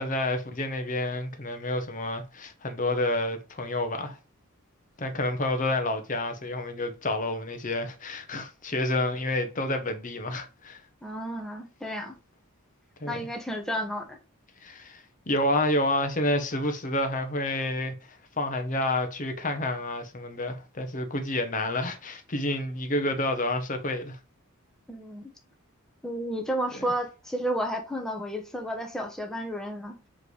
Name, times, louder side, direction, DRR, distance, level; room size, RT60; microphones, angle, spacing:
voice 1, 0.0-4.2 5.0-10.8 13.0-13.2 14.6-17.9 18.4-24.2, left 1 dB, 35° left, 0.9 m, -29 dB
voice 2, 11.0-12.2 13.0-14.2 24.9-25.3 26.0-30.0, equal, ahead, 0.9 m, -32 dB
7.5 x 3.2 x 4.8 m
head